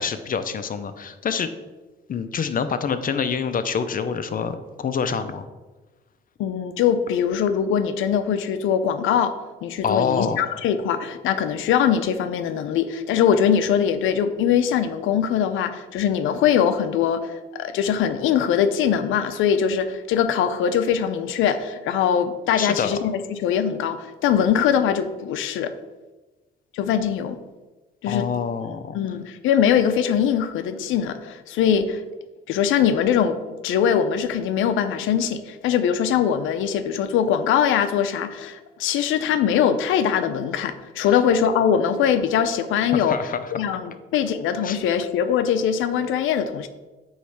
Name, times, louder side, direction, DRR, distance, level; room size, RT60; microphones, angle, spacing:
voice 1, 0.0-1.5 2.1-5.4 9.8-10.5 22.6-23.0 28.1-29.2 42.9-43.5 44.6-45.0, left 6 dB, 45° left, 11 dB, 0.6 m, -26 dB
voice 2, 6.4-9.4 9.6-25.7 26.7-27.4 28.0-28.3 28.9-32.0 32.5-43.2 43.5-46.7, left 8 dB, 85° left, 10 dB, 0.6 m, -22 dB
8.2 x 3.2 x 5.8 m, 1.2 s
cardioid pair, 90°, 20 cm